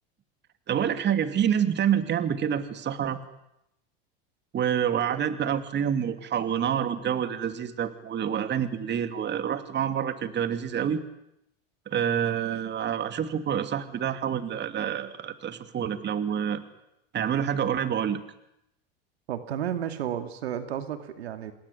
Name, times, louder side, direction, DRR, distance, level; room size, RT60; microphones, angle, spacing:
voice 1, 0.7-3.2 4.5-11.0 11.9-16.6 17.1-18.2, right 8 dB, 35° right, 9 dB, 2.6 m, -27 dB
voice 2, 19.3-21.5, right 10 dB, 85° right, 9 dB, 2.4 m, -32 dB
28.0 x 20.5 x 9.8 m, 0.83 s
hypercardioid pair, 90°, 31 cm